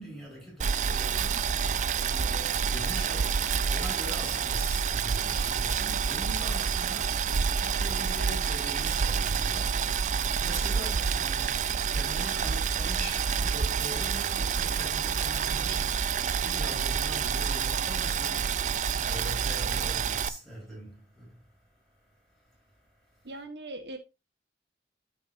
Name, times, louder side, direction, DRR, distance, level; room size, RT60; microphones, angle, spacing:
voice 1, 0.0-23.4, equal, 5° left, 4.3 m, -43 dB
Boiling, 0.6-20.3, right 6 dB, 45° right, 0.4 m, -28 dB
voice 2, 23.2-24.0, right 2 dB, 75° right, 1.5 m, -40 dB
13.0 x 5.4 x 2.7 m
head